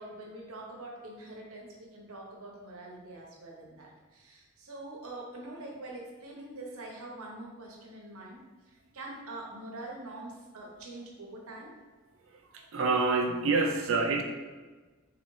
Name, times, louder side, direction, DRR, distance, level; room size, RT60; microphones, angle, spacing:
voice 1, 0.0-8.4 8.7-11.7, right 2 dB, 85° right, -2 dB, 1.0 m, -44 dB
voice 2, 12.3-14.2, right 3 dB, 65° right, 3 dB, 0.6 m, -27 dB
4.0 x 4.0 x 3.2 m, 1.3 s
head